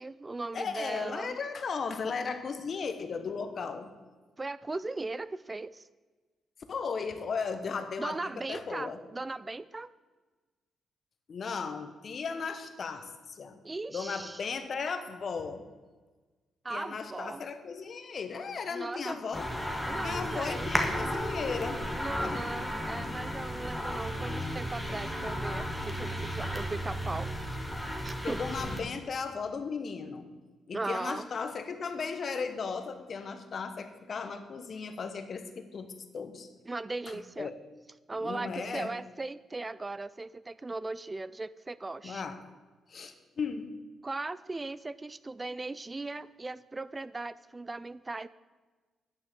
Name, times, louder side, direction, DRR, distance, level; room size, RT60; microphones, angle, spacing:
voice 1, 0.0-1.4 4.4-5.9 8.0-9.9 13.6-14.4 16.6-17.4 18.7-19.2 19.9-20.7 21.9-27.3 28.0-28.4 30.7-31.2 36.7-37.5 38.1-42.2 44.0-48.3, right 3 dB, 25° right, 17 dB, 0.3 m, -38 dB
voice 2, 0.5-3.9 6.7-9.0 11.3-13.6 13.9-15.7 16.7-19.5 20.0-21.8 22.2-22.4 28.2-30.3 30.7-35.9 36.1-36.5 37.1-37.5 38.2-38.9 42.0-42.4 42.9-43.7, left 5 dB, 55° left, 9 dB, 1.1 m, -36 dB
sound 1, 19.3-28.8, equal, 5° left, 1.9 m, -34 dB
9.7 x 6.3 x 6.8 m, 1.3 s
supercardioid pair, 60°, 0 cm